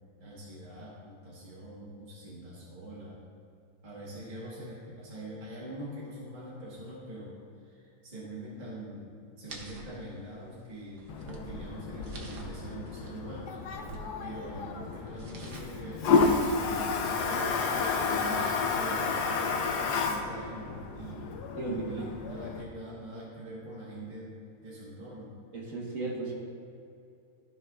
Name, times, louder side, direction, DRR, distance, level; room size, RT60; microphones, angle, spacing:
voice 1, 0.2-3.2 3.8-7.4 7.6-13.6 14.2-21.2 21.6-24.4 24.6-25.4, right 1 dB, 30° right, -8 dB, 1.6 m, -43 dB
sound 1, 9.5-17.2, right 3 dB, 80° right, 1.5 m, -49 dB
Toilet flush, 11.1-22.6, left 4 dB, 80° left, 1.2 m, -31 dB
voice 2, 21.5-22.0 25.5-26.3, right 2 dB, 55° right, -3 dB, 1.8 m, -35 dB
14.0 x 5.5 x 2.4 m, 2.5 s
omnidirectional pair, 1.8 m